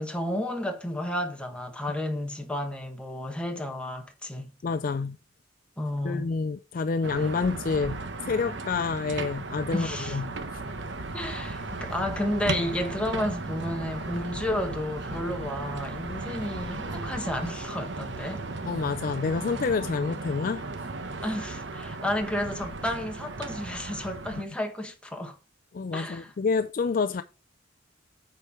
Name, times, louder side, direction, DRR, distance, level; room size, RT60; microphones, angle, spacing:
voice 1, 0.0-4.5 5.8-6.3 9.7-10.2 11.1-18.4 21.2-25.4 25.9-26.3, left 1 dB, 5° left, 1.2 m, -32 dB
voice 2, 4.6-5.2 6.0-10.2 18.7-20.6 25.7-27.2, left 4 dB, 45° left, 0.4 m, -28 dB
sound 1, 7.0-24.4, right 3 dB, 65° right, 1.0 m, -36 dB
sound 2, 10.4-17.6, left 1 dB, 25° left, 1.9 m, -47 dB
8.2 x 4.5 x 5.6 m
head